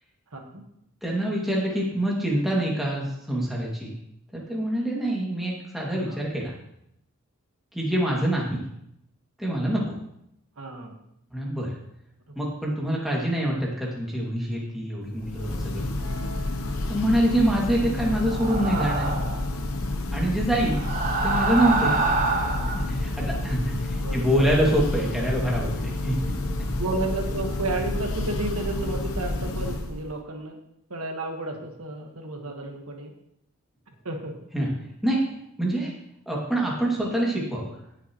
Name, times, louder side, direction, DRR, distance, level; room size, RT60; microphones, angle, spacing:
voice 1, 0.3-0.7 6.0-6.2 10.6-10.9 12.3-12.4 18.0-18.1 24.0-24.3 26.8-30.6 30.9-33.1 34.0-34.4, right 2 dB, 90° right, 3 dB, 1.6 m, -32 dB
voice 2, 1.0-3.9 4.3-6.5 7.7-8.6 9.4-10.0 11.3-11.8 12.3-15.9 16.9-19.1 20.1-20.8 21.2-21.9 22.7-26.3 26.6-26.7 34.5-34.7 35.0-35.2 35.6-35.9 36.3-37.8, right 1 dB, ahead, -4 dB, 2.3 m, -25 dB
Church bell, 15.1-30.1, left 2 dB, 80° left, 0.9 m, -29 dB
sound 1, 18.2-19.4 20.7-22.8, right 3 dB, 35° right, 1.2 m, -26 dB
17.5 x 6.9 x 3.1 m, 0.77 s
head